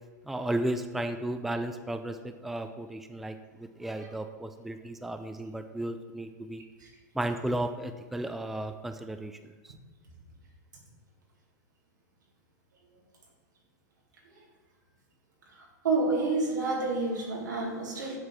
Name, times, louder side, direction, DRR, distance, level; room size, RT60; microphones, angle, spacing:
voice 1, 0.3-6.6 7.2-9.4, right 1 dB, ahead, 8 dB, 0.3 m, -34 dB
voice 2, 15.8-18.2, right 3 dB, 85° right, -1 dB, 1.8 m, -28 dB
7.5 x 4.1 x 4.7 m, 1.3 s
hypercardioid pair, 110°, 10 cm